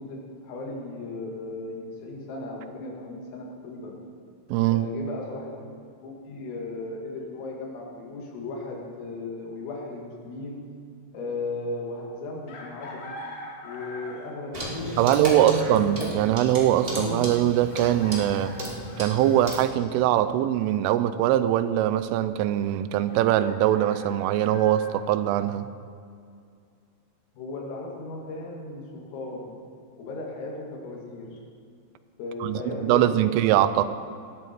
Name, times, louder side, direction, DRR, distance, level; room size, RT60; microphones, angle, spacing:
voice 1, 0.0-4.0 4.7-5.6 6.0-10.8 11.1-13.2 13.6-15.6 27.3-29.5 30.0-31.4 32.2-33.5, left 2 dB, 90° left, -1 dB, 4.8 m, -36 dB
voice 2, 4.5-4.9 15.0-18.6 19.0-25.7 32.4-33.9, right 12 dB, 85° right, 13 dB, 3.1 m, -22 dB
Chicken rooster, 12.5-14.4 16.1-16.2 17.7-19.6 23.1-25.0, left 1 dB, 60° left, 2.9 m, -43 dB
Clock, 14.5-19.7, right 1 dB, 45° right, 0.7 m, -32 dB
19.0 x 13.0 x 4.5 m, 2.3 s
omnidirectional pair, 5.8 m